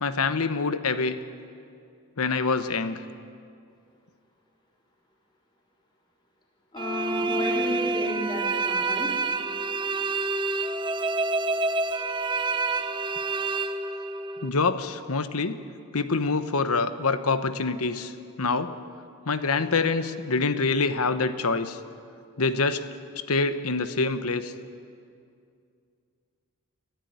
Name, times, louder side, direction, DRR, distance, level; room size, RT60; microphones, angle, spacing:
voice 1, 0.0-1.2 2.2-3.0 14.4-15.6 15.9-18.1 18.4-18.8 19.3-21.8 22.4-22.8 23.3-24.5, left 4 dB, 75° left, 10 dB, 1.1 m, -25 dB
voice 2, 6.7-9.1, left 1 dB, 20° left, -3 dB, 3.9 m, -32 dB
sound 1, 6.8-14.5, right 3 dB, 20° right, 0.6 m, -28 dB
25.0 x 15.0 x 9.5 m, 2.4 s
head